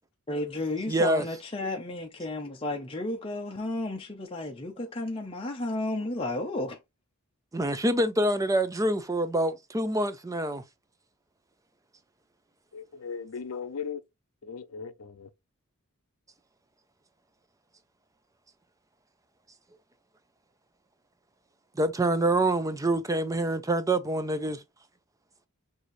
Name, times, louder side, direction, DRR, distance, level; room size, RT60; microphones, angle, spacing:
voice 1, 0.3-6.8, left 2 dB, 25° left, 0.7 m, -32 dB
voice 2, 0.9-1.2 7.5-10.6 21.8-24.6, right 1 dB, 15° right, 0.5 m, -26 dB
voice 3, 12.7-14.0 14.4-15.3, left 6 dB, 70° left, 0.6 m, -37 dB
6.2 x 2.7 x 3.1 m
head